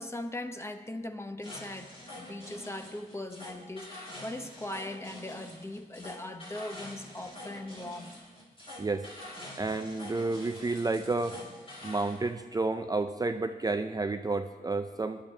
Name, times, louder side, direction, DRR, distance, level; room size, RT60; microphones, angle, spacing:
voice 1, 0.0-8.1, left 1 dB, 15° left, 7 dB, 0.9 m, -40 dB
sound 1, 1.4-12.2, left 1 dB, 35° left, 3.2 m, -46 dB
voice 2, 9.6-11.4 11.8-15.2, right 3 dB, 25° right, 8 dB, 0.5 m, -31 dB
17.0 x 10.5 x 3.3 m, 1.3 s
cardioid pair, 85°, 16 cm